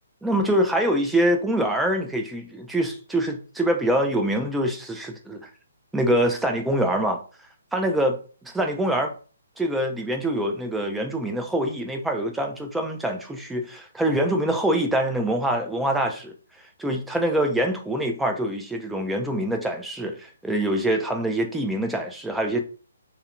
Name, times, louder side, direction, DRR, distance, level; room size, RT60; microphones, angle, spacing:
voice 1, 0.2-5.4 5.9-7.2 7.7-8.2 8.4-9.1 9.6-16.3 16.8-22.6, right 1 dB, 5° right, 0.3 m, -24 dB
2.4 x 2.0 x 2.9 m
hypercardioid pair, 160°, 0 cm